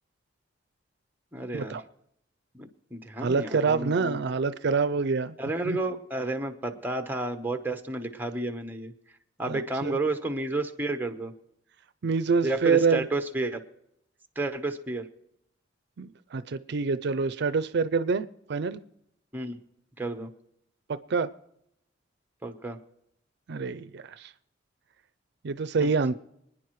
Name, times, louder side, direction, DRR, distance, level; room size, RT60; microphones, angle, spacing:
voice 1, 1.3-1.8 2.6-4.2 5.4-8.9 9.4-11.3 12.4-13.6 14.4-15.1 19.3-19.6 20.0-20.3 22.4-22.8 25.8-25.9, right 2 dB, 10° right, 5 dB, 1.0 m, -31 dB
voice 2, 3.2-5.3 5.6-5.8 9.5-10.0 12.0-13.1 16.0-18.8 20.9-21.3 23.5-24.3 25.4-26.1, right 4 dB, 65° right, 14 dB, 0.5 m, -26 dB
25.5 x 9.8 x 3.1 m, 0.77 s
head